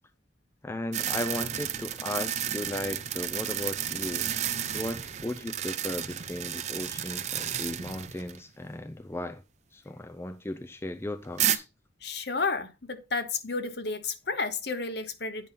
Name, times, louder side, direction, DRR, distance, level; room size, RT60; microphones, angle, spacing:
voice 1, 0.6-4.3 4.7-9.4 9.7-11.7, left 1 dB, 15° left, 0.4 m, -36 dB
sound 1, 0.9-8.4 8.7-8.8 11.4-11.6, right 10 dB, 35° right, 0.5 m, -32 dB
voice 2, 12.0-15.5, left 4 dB, 55° left, 1.0 m, -32 dB
9.0 x 5.5 x 4.1 m
head